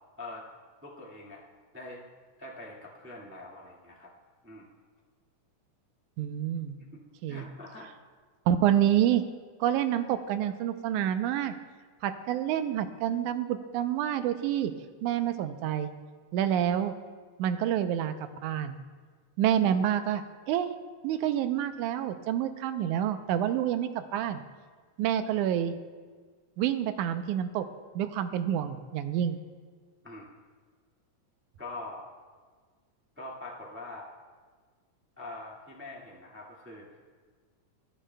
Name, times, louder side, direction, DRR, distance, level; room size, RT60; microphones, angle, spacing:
voice 1, 0.8-1.4 1.7-2.0 2.4-4.1 4.4-4.7 6.8-6.9 7.3-7.9 30.0-30.3 31.6-32.1 33.2-34.1 35.2-36.9, left 2 dB, 10° right, -4 dB, 0.6 m, -43 dB
voice 2, 6.2-6.8 7.2-7.5 8.5-9.2 9.6-11.5 12.0-14.7 15.0-15.9 16.3-16.9 17.4-18.1 18.4-18.8 19.4-20.7 21.0-24.4 25.0-25.7 26.6-27.7 28.0-29.4, right 10 dB, 80° right, 9 dB, 2.0 m, -28 dB
29.0 x 9.9 x 2.2 m, 1.5 s
omnidirectional pair, 3.6 m